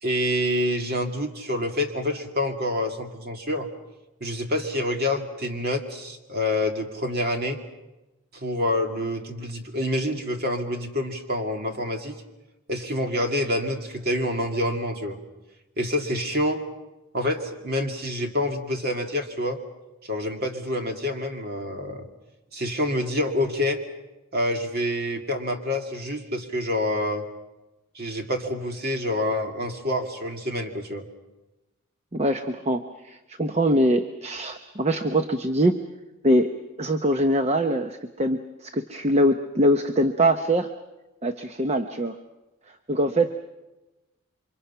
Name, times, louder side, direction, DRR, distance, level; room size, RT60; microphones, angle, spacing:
voice 1, 0.0-3.7 4.2-7.6 8.3-12.2 12.7-15.2 15.8-16.6 17.1-19.6 20.0-22.1 22.5-23.8 24.3-27.2 27.9-31.1, left 1 dB, 45° right, 4 dB, 2.4 m, -27 dB
voice 2, 32.1-35.8 36.2-36.5 36.8-40.7 41.2-42.2 42.9-43.3, right 1 dB, 30° right, 7 dB, 0.8 m, -23 dB
29.0 x 25.0 x 5.7 m, 1.0 s
head